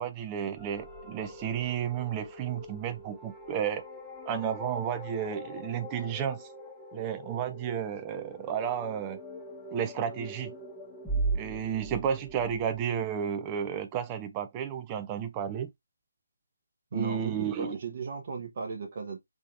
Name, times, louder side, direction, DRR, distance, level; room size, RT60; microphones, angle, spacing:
voice 1, 0.0-3.8 4.3-6.5 6.9-9.2 9.7-10.5 11.3-15.7 16.9-17.8, right 8 dB, 20° right, 0.3 m, -32 dB
sound 1, 0.6-12.8, right 2 dB, ahead, 0.8 m, -40 dB
voice 2, 16.9-19.2, right 5 dB, 40° right, 0.8 m, -36 dB
3.3 x 2.8 x 2.5 m
figure-of-eight pair, 150°, 0 cm